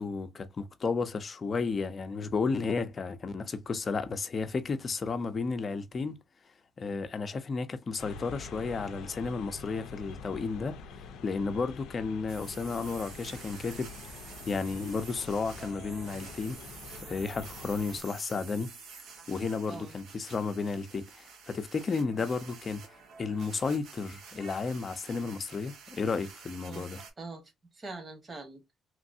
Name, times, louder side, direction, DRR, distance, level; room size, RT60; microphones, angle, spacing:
voice 1, 0.0-6.2 6.8-10.8 11.2-16.6 17.0-18.7 19.3-22.9 23.2-27.0, left 4 dB, 40° left, 0.6 m, -33 dB
sound 1, 8.0-18.0, left 5 dB, 85° left, 0.4 m, -46 dB
sound 2, 12.3-27.1, right 5 dB, 80° right, 1.1 m, -49 dB
voice 2, 27.2-28.6, right 3 dB, 35° right, 1.3 m, -43 dB
3.1 x 2.6 x 2.5 m
cardioid pair, 90°, 0 cm